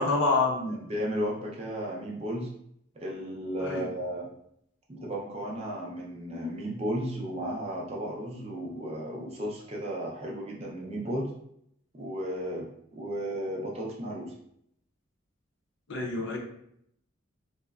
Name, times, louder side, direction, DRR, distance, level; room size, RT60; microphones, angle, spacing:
voice 1, 0.0-0.8 3.6-3.9 15.9-16.4, left 3 dB, 60° left, 1 dB, 0.5 m, -27 dB
voice 2, 0.7-2.5 3.0-4.3 4.9-11.3 11.9-12.7 12.9-14.3, equal, 30° right, -2 dB, 0.5 m, -34 dB
3.4 x 2.0 x 2.3 m, 0.72 s
head